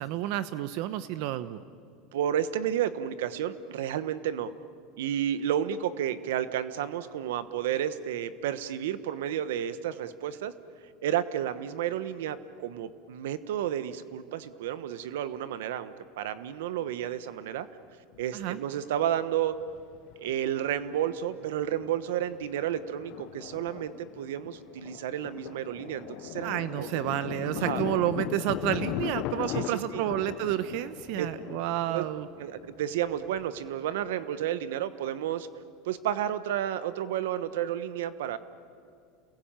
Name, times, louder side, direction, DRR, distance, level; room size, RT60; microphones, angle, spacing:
voice 1, 0.0-1.6 18.3-18.6 26.4-32.3, right 13 dB, 60° right, 13 dB, 0.8 m, -30 dB
voice 2, 2.1-4.5 5.0-10.5 11.0-17.7 18.2-19.6 20.2-26.5 26.8-26.9 27.5-27.8 29.5-30.1 31.2-31.3 31.9-32.0 32.4-35.5 35.8-38.4, right 10 dB, 85° right, 13 dB, 1.1 m, -31 dB
Thunder, 18.2-18.3 19.6-20.4 20.6-20.7 21.2-21.5 21.8-34.2, left 15 dB, 50° left, 0.7 m, -38 dB
30.0 x 21.5 x 9.0 m, 2.3 s
supercardioid pair, 145°, 0 cm